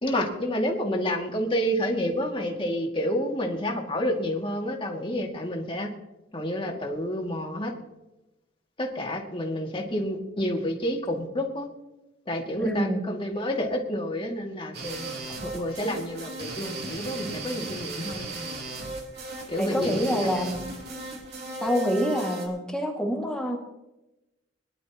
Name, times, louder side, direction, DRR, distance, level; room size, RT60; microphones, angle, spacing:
voice 1, 0.0-5.9 6.3-7.7 8.8-11.7 12.3-15.1 15.4-18.3 19.5-20.3, equal, 30° left, 1 dB, 2.3 m, -29 dB
voice 2, 12.6-13.0 19.6-20.6 21.6-23.6, equal, 5° left, 0 dB, 2.1 m, -26 dB
sound 1, 14.7-22.5, right 2 dB, 55° right, 3.3 m, -36 dB
22.5 x 11.5 x 3.0 m, 0.96 s
head